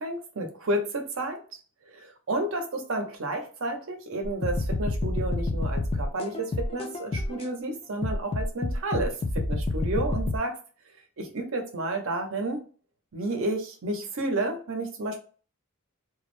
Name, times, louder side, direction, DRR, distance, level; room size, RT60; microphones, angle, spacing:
voice 1, 0.0-1.6 1.9-10.6 11.2-12.6 13.1-15.2, right 1 dB, 65° right, 4 dB, 0.6 m, -31 dB
sound 1, 4.2-7.5 8.0-10.4, left 2 dB, 25° left, 0.3 m, -28 dB
2.3 x 2.0 x 3.1 m, 0.39 s
head